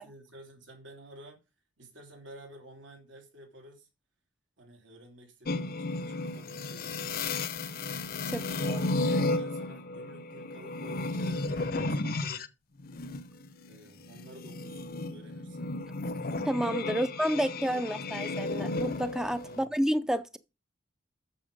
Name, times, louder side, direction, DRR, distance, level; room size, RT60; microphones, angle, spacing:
voice 1, 0.0-1.4 1.8-3.9 4.6-7.4 8.3-9.1 9.4-12.5 13.7-15.8 16.9-17.1 17.5-18.2 19.4-19.7, right 1 dB, 85° right, 3.0 m, -52 dB
sound 1, 5.5-12.5 12.8-19.6, left 2 dB, 50° left, 0.8 m, -33 dB
voice 2, 8.3-8.8 16.5-20.4, equal, 5° right, 0.4 m, -30 dB
8.5 x 7.0 x 5.2 m
head